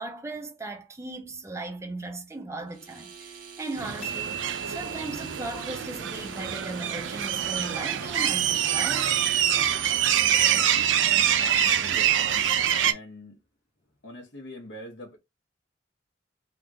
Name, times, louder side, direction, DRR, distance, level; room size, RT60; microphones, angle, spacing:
voice 1, 0.0-9.1, right 2 dB, 15° right, 0.7 m, -37 dB
sound 1, 2.7-10.2, right 6 dB, 45° right, 1.1 m, -44 dB
sound 2, 3.8-12.9, right 9 dB, 85° right, 0.5 m, -25 dB
sound 3, 4.0-7.6, right 9 dB, 55° left, 1.5 m, -40 dB
voice 2, 10.9-12.3 12.7-13.4 14.0-15.2, left 1 dB, 70° left, 1.3 m, -44 dB
3.6 x 2.4 x 2.8 m
head